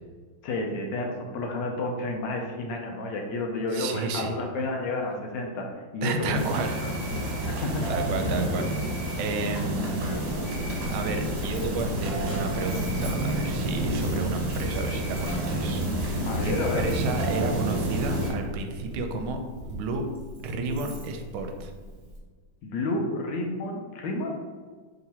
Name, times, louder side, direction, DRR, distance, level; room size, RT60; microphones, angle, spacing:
voice 1, 0.4-5.7 5.9-6.9 7.5-7.9 16.2-16.9 22.6-24.3, left 2 dB, 75° left, 1 dB, 1.2 m, -30 dB
voice 2, 3.7-4.3 6.0-6.8 7.3-8.7 9.2-10.1 10.8-19.4 19.7-20.1 20.4-21.7, right 3 dB, 85° right, 5 dB, 1.4 m, -32 dB
sound 1, 6.3-18.3, right 1 dB, 70° right, 1.7 m, -29 dB
Coin (dropping), 9.9-22.2, equal, 35° right, 0.7 m, -41 dB
3.5 x 2.9 x 4.1 m, 1.5 s
omnidirectional pair, 2.2 m